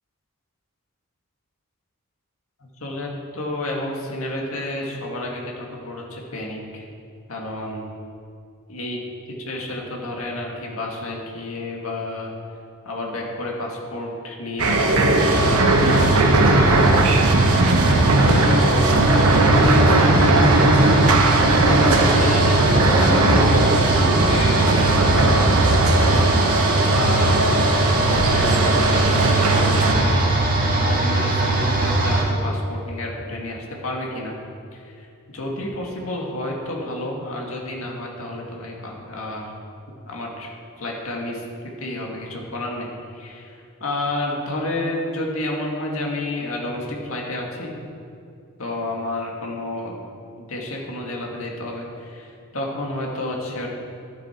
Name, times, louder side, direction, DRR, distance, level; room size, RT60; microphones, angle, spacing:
voice 1, 2.6-6.8 7.3-7.8 8.7-9.0 9.4-12.3 12.8-17.5 17.8-20.3 21.6-26.3 26.9-27.4 28.1-30.3 30.6-34.4 34.7-35.1 35.3-39.5 40.1-41.4 41.8-42.9 43.1-47.7 48.6-50.0 50.4-53.7, left 1 dB, 75° left, -1 dB, 2.0 m, -30 dB
sound 1, 14.6-29.9, right 2 dB, 85° right, 1.0 m, -18 dB
sound 2, 15.2-32.2, right 2 dB, 40° right, 1.7 m, -21 dB
12.0 x 9.6 x 4.5 m, 2.5 s
head